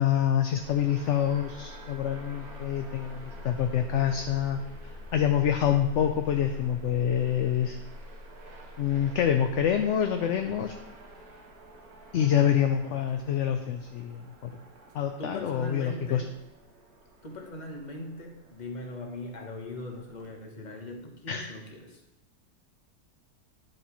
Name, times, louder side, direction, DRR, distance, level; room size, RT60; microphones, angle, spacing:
voice 1, 0.0-4.6 5.1-7.8 8.8-10.7 12.1-14.6 14.9-16.2 21.3-21.5, left 9 dB, 65° left, 6 dB, 0.8 m, -26 dB
sound 1, 0.6-20.3, left 1 dB, 85° right, 1.6 m, -46 dB
voice 2, 12.8-13.3 15.2-16.4 17.2-22.0, left 1 dB, 30° left, 2 dB, 1.2 m, -40 dB
10.5 x 7.5 x 3.1 m, 0.89 s
omnidirectional pair, 1.6 m